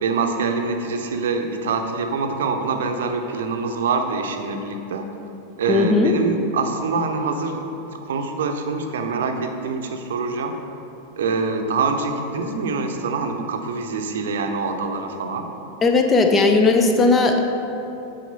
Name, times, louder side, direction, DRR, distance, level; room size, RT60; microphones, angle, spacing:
voice 1, 0.0-5.1 5.6-7.6 8.0-10.5 11.2-15.5, right 4 dB, 60° right, 4 dB, 0.7 m, -25 dB
voice 2, 5.7-6.1 15.8-17.4, left 3 dB, 20° left, 4 dB, 0.7 m, -17 dB
9.2 x 4.3 x 5.3 m, 2.9 s
figure-of-eight pair, 90°, 0 cm